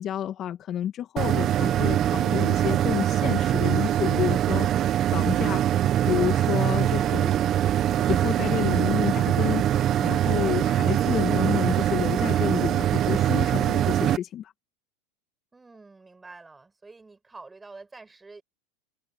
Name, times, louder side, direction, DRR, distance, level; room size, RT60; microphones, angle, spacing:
voice 1, 0.0-4.7 5.1-7.3 8.1-14.5, left 10 dB, 35° left, 2.1 m, -30 dB
sound 1, 1.2-14.2, right 11 dB, 35° right, 1.0 m, -23 dB
voice 2, 15.5-18.4, right 3 dB, 10° right, 6.7 m, -47 dB
supercardioid pair, 125°, 0 cm